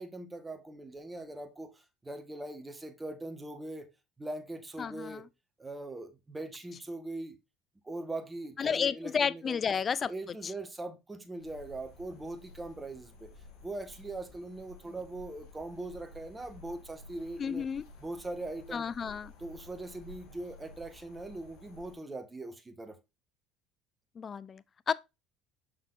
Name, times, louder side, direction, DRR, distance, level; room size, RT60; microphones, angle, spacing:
voice 1, 0.0-3.9 4.2-5.2 5.6-7.4 7.8-9.8 10.0-13.3 13.6-17.6 18.0-18.9 19.4-23.0, right 2 dB, 15° right, 1.6 m, -41 dB
voice 2, 4.8-5.2 8.6-10.1 17.4-17.8 18.7-19.3 24.2-24.9, left 6 dB, 35° left, 0.3 m, -31 dB
sound 1, 11.4-21.9, left 2 dB, 70° left, 2.6 m, -53 dB
6.7 x 6.0 x 2.6 m
supercardioid pair, 85°, 0 cm